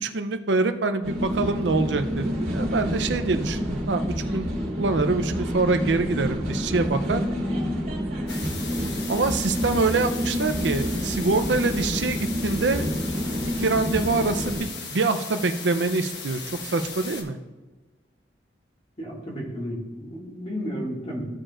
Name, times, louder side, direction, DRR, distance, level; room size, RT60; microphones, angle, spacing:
voice 1, 0.0-4.0 4.3-4.5 4.8-7.2 9.1-12.9 13.6-17.4, right 3 dB, 75° right, 9 dB, 0.6 m, -25 dB
sound 1, 1.0-14.6, equal, 55° right, 2.5 m, -28 dB
sound 2, 8.3-17.2, left 4 dB, 65° left, 1.2 m, -37 dB
voice 2, 19.0-21.3, equal, 35° left, -4 dB, 2.0 m, -32 dB
15.0 x 5.0 x 2.5 m, 1.2 s
head